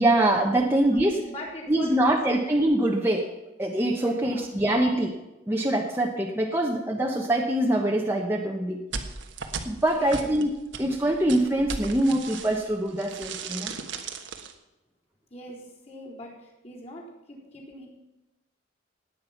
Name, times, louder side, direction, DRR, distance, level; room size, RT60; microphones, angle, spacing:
voice 1, 0.0-1.2 1.7-3.3 3.6-5.1 5.5-8.8 9.6-10.5 10.8-13.7, right 1 dB, 10° right, 0 dB, 1.1 m, -24 dB
voice 2, 1.1-2.4 4.0-5.0 9.9-10.3 15.3-15.6 15.9-17.0 17.3-17.9, left 1 dB, 35° left, -4 dB, 4.2 m, -41 dB
sound 1, 8.9-12.7 13.0-14.5, right 5 dB, 80° right, 1.4 m, -36 dB
17.0 x 9.8 x 5.9 m, 0.98 s
head